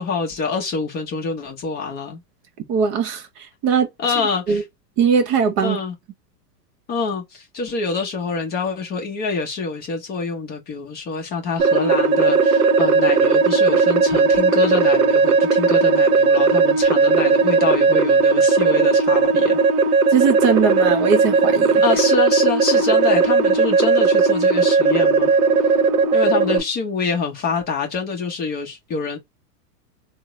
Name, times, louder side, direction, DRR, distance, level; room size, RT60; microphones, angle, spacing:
voice 1, 0.0-2.2 4.0-4.6 5.6-5.9 6.9-19.6 21.8-25.3 26.1-29.2, left 4 dB, 20° left, 0.6 m, -26 dB
voice 2, 2.7-3.9 4.5-4.6 5.0-5.8 20.1-21.8, right 6 dB, 25° right, 0.5 m, -20 dB
sound 1, 11.6-26.6, right 4 dB, 60° right, 0.8 m, -17 dB
3.6 x 2.0 x 2.9 m
hypercardioid pair, 130°, 48 cm